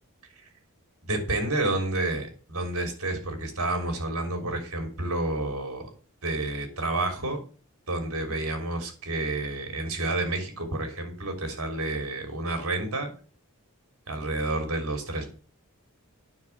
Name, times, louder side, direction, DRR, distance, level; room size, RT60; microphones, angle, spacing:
voice 1, 1.1-5.9 6.2-7.4 7.9-13.1 14.1-15.3, right 2 dB, 70° right, 5 dB, 3.2 m, -30 dB
9.8 x 6.0 x 7.1 m, 0.38 s
head